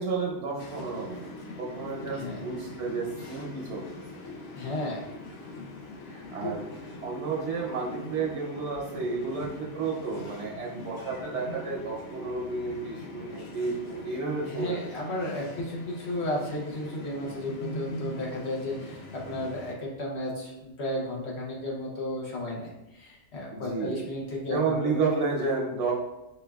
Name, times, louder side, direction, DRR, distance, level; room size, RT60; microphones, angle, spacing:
voice 1, 0.0-3.9 4.1-4.2 6.1-6.6 7.0-14.9 23.5-24.0 24.5-25.9, right 4 dB, 75° right, -2 dB, 1.1 m, -31 dB
sound 1, 0.6-19.7, left 1 dB, 90° left, 0.9 m, -42 dB
voice 2, 4.6-5.1 6.0-6.5 14.4-25.0, left 1 dB, 65° left, -3 dB, 1.1 m, -34 dB
5.0 x 2.3 x 2.3 m, 0.98 s
omnidirectional pair, 1.2 m